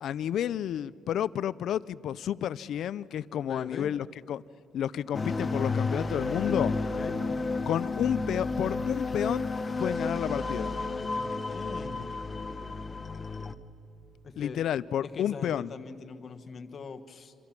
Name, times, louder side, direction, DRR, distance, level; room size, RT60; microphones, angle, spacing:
voice 1, 0.0-4.4 4.7-6.7 7.7-9.5 9.8-10.7 14.4-15.7, left 10 dB, 60° left, 0.5 m, -31 dB
voice 2, 3.3-3.9 6.9-7.1 11.1-12.2 14.2-14.6 15.0-17.3, left 5 dB, 40° left, 1.3 m, -42 dB
sound 1, 5.1-13.5, left 3 dB, 20° left, 0.9 m, -31 dB
26.5 x 26.0 x 6.0 m
cardioid pair, 145°, 0 cm